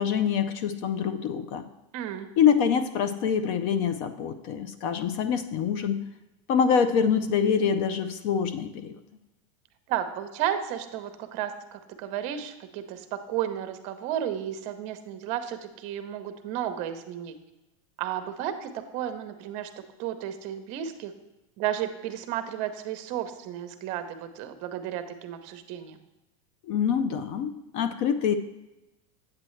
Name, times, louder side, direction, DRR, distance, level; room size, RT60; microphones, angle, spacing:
voice 1, 0.0-1.7 2.4-6.0 6.5-9.0 26.6-28.3, left 7 dB, 45° left, 11 dB, 0.5 m, -25 dB
voice 2, 1.9-2.3 9.9-17.3 18.0-19.7 20.0-21.1 21.6-26.0, right 10 dB, 45° right, 9 dB, 0.7 m, -33 dB
8.5 x 7.6 x 3.2 m, 1.0 s
supercardioid pair, 155°, 16 cm